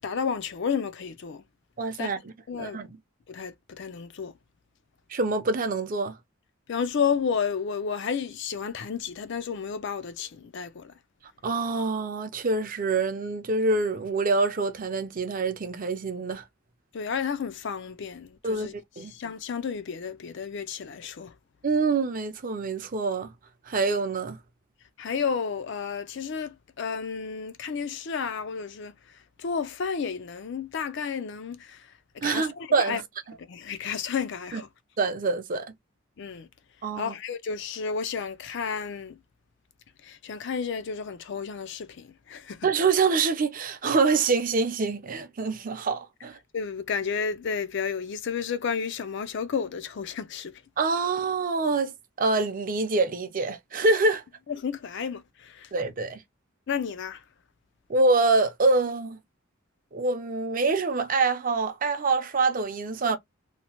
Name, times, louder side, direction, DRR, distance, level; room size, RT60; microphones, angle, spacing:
voice 1, 0.0-1.4 2.0-2.1 2.5-2.8 3.3-4.3 6.7-10.9 16.9-18.7 19.0-21.3 25.0-28.9 29.4-31.9 32.2-33.0 33.4-34.7 36.2-36.5 37.0-39.2 40.0-42.7 46.5-50.6 54.5-55.7 56.7-57.2, left 6 dB, 60° left, 0.4 m, -32 dB
voice 2, 1.8-3.0 5.1-6.2 11.4-16.4 18.4-18.7 19.0-19.1 21.6-23.3 23.7-24.4 32.2-33.0 34.5-34.6 35.0-35.7 36.8-37.1 42.6-46.4 50.8-54.2 55.7-56.2 57.9-59.2 59.9-63.2, right 3 dB, 40° right, 0.5 m, -25 dB
2.8 x 2.0 x 2.9 m
head